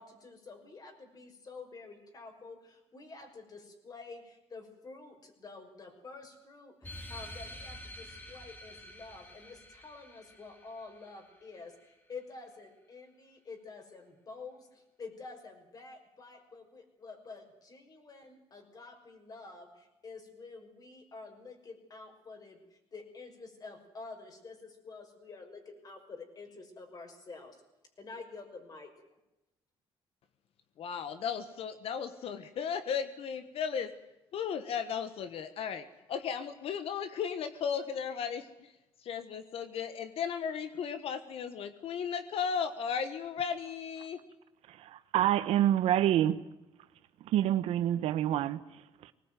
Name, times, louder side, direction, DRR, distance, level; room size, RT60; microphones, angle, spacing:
voice 1, 0.0-27.6 28.0-28.9, left 4 dB, 40° left, 6.0 m, -49 dB
sound 1, 6.8-11.8, left 1 dB, 20° left, 3.4 m, -48 dB
voice 2, 30.8-33.9 34.3-38.7 39.0-44.2, left 7 dB, 70° left, 1.5 m, -35 dB
voice 3, 44.6-46.4 47.2-49.1, right 12 dB, 90° right, 1.3 m, -28 dB
20.5 x 19.5 x 9.2 m
cardioid pair, 110°, 10 cm